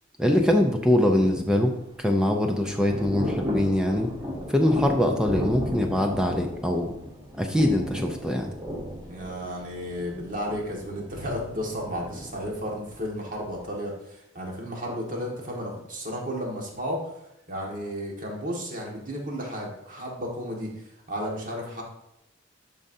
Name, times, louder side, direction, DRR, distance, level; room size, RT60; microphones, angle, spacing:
voice 1, 0.2-1.7 2.0-4.1 4.5-6.9 7.4-8.5, left 1 dB, 5° right, 3 dB, 0.5 m, -23 dB
Thunder / Rain, 1.7-13.7, left 1 dB, 20° right, 0.9 m, -35 dB
voice 2, 9.1-17.0 17.5-20.7 21.1-21.8, equal, 40° right, -1 dB, 1.8 m, -33 dB
11.0 x 5.4 x 2.7 m, 0.83 s
head